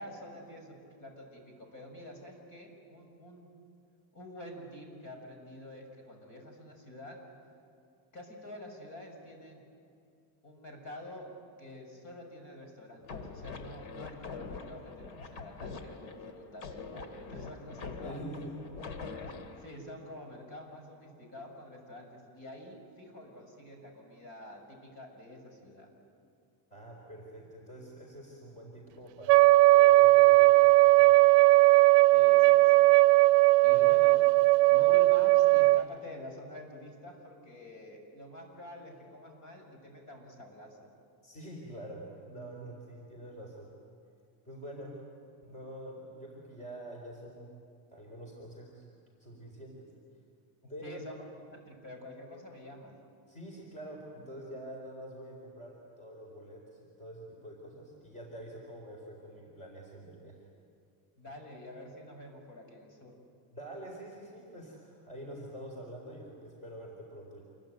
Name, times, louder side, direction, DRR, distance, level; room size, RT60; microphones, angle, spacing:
voice 1, 0.0-3.5 4.1-7.2 8.1-9.6 10.4-11.3 11.6-18.2 19.1-25.9 32.1-32.9 33.6-34.2 34.7-40.9 50.6-51.2 51.5-53.0 61.2-63.2, left 1 dB, 40° left, 3 dB, 6.7 m, -48 dB
sound 1, 13.0-19.7, left 4 dB, 70° left, 2.6 m, -44 dB
voice 2, 18.0-18.6 26.7-31.4 33.7-33.8 41.2-43.7 44.4-45.0 45.4-47.5 47.9-48.8 49.2-49.9 50.7-51.0 53.3-60.4 63.5-67.4, right 1 dB, 15° left, 0 dB, 4.2 m, -46 dB
Wind instrument woodwind instrument, 29.3-35.8, right 21 dB, 85° right, 0.7 m, -19 dB
28.0 x 23.0 x 9.3 m, 2.3 s
cardioid pair, 165°, 48 cm